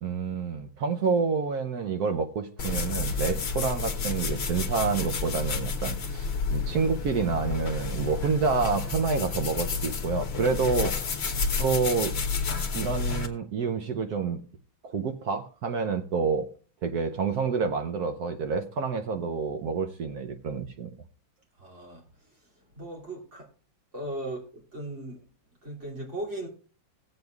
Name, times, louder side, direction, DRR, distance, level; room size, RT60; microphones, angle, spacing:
voice 1, 0.0-10.9 11.6-12.1 12.7-14.4 14.8-16.5 16.8-20.9, right 5 dB, 65° right, 1.1 m, -28 dB
sound 1, 2.6-13.3, left 5 dB, 45° left, 0.9 m, -30 dB
voice 2, 21.6-22.0 22.7-23.5 23.9-25.2 25.6-26.5, right 1 dB, 35° right, 3.0 m, -37 dB
17.5 x 7.9 x 2.4 m
omnidirectional pair, 2.2 m